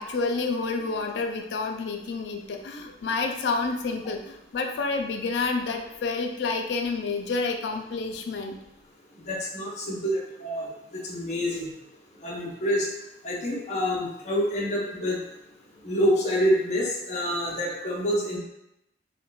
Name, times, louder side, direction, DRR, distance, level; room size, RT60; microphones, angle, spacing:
voice 1, 0.0-8.6, left 4 dB, 70° left, 4 dB, 0.4 m, -29 dB
voice 2, 9.3-10.7 11.0-11.7 12.2-12.9 13.2-15.2 15.8-18.4, equal, 40° left, -3 dB, 0.7 m, -27 dB
3.6 x 2.2 x 2.3 m, 0.88 s
head